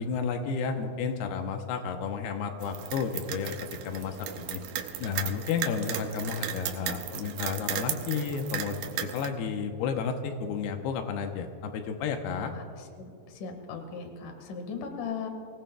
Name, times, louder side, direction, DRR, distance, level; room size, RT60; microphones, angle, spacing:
voice 1, 0.0-3.6 3.8-4.6 5.0-12.5, left 6 dB, 90° left, 5 dB, 2.8 m, -32 dB
sound 1, 2.6-9.3, right 10 dB, 80° right, 2.6 m, -36 dB
voice 2, 13.0-15.3, left 5 dB, 60° left, 4 dB, 3.0 m, -38 dB
24.5 x 18.0 x 2.3 m, 2.5 s
omnidirectional pair, 4.5 m